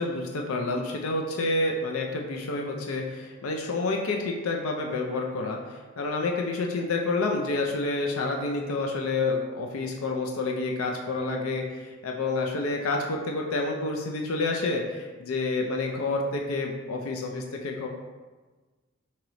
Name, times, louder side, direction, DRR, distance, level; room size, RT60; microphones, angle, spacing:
voice 1, 0.0-17.9, left 3 dB, 85° left, 1 dB, 0.5 m, -29 dB
4.6 x 2.9 x 3.9 m, 1.3 s
head